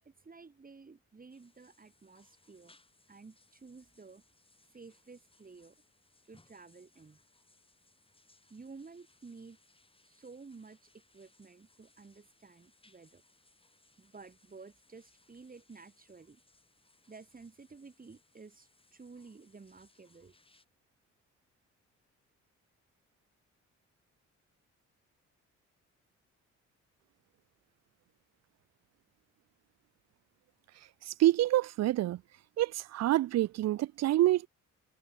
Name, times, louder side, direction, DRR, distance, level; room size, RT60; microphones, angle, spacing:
voice 1, 0.0-2.8 3.1-4.2 4.6-5.8 6.3-7.2 8.5-9.6 10.0-13.2 14.0-16.4 17.1-20.4, right 4 dB, 30° right, 5.3 m, -53 dB
sound 1, 1.3-20.6, left 2 dB, 20° left, 7.6 m, -68 dB
voice 2, 31.1-32.2 32.6-34.5, right 14 dB, 60° right, 0.5 m, -27 dB
cardioid pair, 90°, 30 cm